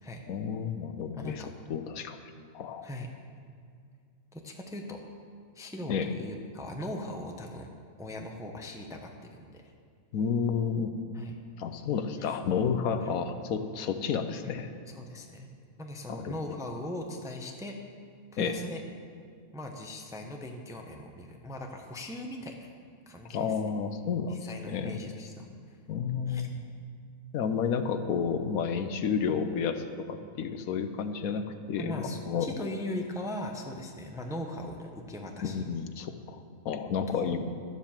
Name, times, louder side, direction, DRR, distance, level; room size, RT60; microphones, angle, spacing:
voice 1, 0.3-1.4 1.7-2.2 2.5-2.9 5.9-6.1 10.1-10.9 11.6-14.7 16.1-16.3 18.4-18.5 23.3-25.0 25.9-26.6 27.3-32.5 35.4-37.4, left 6 dB, 75° left, 9 dB, 1.1 m, -31 dB
voice 2, 1.1-1.5 2.8-3.1 4.3-5.0 5.5-7.7 8.0-9.6 11.1-11.4 12.2-12.4 13.0-13.2 14.4-15.5 15.8-17.8 18.3-18.8 19.5-22.7 23.1-23.5 24.3-25.8 26.3-26.5 31.8-35.6 37.1-37.3, left 1 dB, 5° right, 2 dB, 0.6 m, -39 dB
11.5 x 7.5 x 7.3 m, 2.2 s
omnidirectional pair, 1.5 m